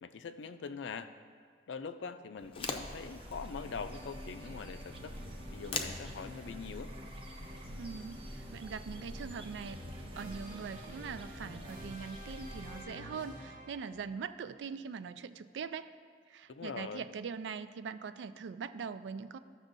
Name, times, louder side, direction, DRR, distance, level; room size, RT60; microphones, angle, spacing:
voice 1, 0.0-1.1 1.7-5.2 5.5-6.9 16.5-17.0, left 5 dB, 90° left, 10 dB, 0.4 m, -43 dB
sound 1, 2.4-8.8, left 4 dB, 30° left, 0.5 m, -45 dB
sound 2, 2.6-12.9, equal, 30° right, 0.7 m, -47 dB
sound 3, 3.6-14.0, equal, 50° right, 1.3 m, -50 dB
voice 2, 7.8-15.9 16.3-19.4, right 6 dB, 75° right, 13 dB, 0.3 m, -42 dB
14.0 x 6.2 x 2.6 m, 2.1 s
head